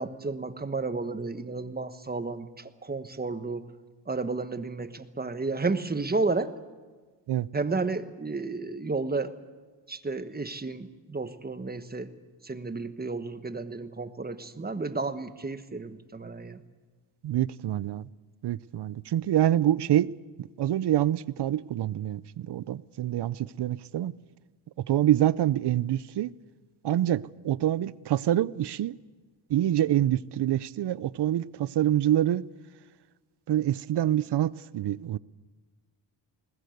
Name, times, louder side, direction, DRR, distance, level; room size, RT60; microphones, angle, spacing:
voice 1, 0.0-3.6 4.1-6.5 7.5-9.4 9.9-12.1 12.4-16.6, right 3 dB, 20° right, 1.3 m, -32 dB
voice 2, 17.2-18.1 18.4-24.1 24.9-26.3 26.8-29.0 29.5-32.4 33.5-35.2, right 12 dB, 60° right, 0.7 m, -26 dB
20.5 x 20.0 x 8.0 m
cardioid pair, 95°, 46 cm